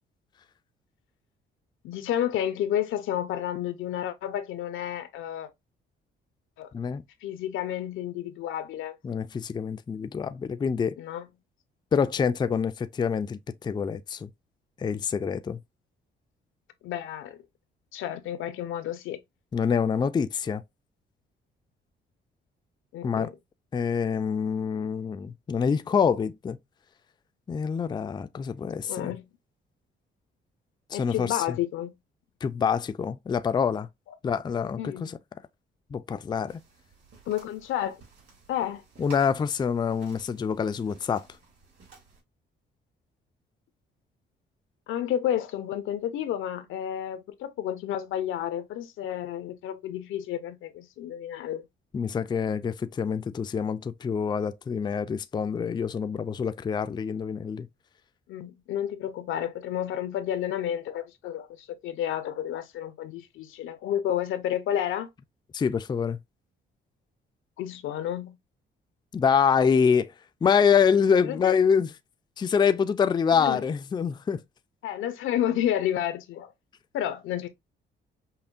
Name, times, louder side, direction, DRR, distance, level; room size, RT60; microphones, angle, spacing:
voice 1, 1.8-5.5 6.6-6.7 7.2-9.0 11.0-11.3 16.8-17.4 17.9-19.2 22.9-23.3 28.8-29.3 30.9-31.9 34.8-35.2 37.3-38.0 38.5-38.8 44.9-51.6 58.3-65.1 67.6-68.4 71.2-71.5 73.3-73.6 74.8-76.5 76.9-77.5, left 11 dB, 85° left, 0.6 m, -31 dB
voice 2, 9.0-11.0 11.9-14.3 14.8-15.6 19.5-20.6 23.0-23.3 23.7-26.6 27.5-29.2 30.9-31.6 32.4-33.9 34.2-35.2 35.9-36.6 39.0-41.3 51.9-57.7 65.5-66.2 69.1-70.1 70.4-71.9 72.4-74.4, left 6 dB, 20° left, 0.3 m, -26 dB
sound 1, 36.5-42.2, right 4 dB, 55° right, 2.7 m, -54 dB
5.5 x 2.1 x 2.4 m
cardioid pair, 90°, 20 cm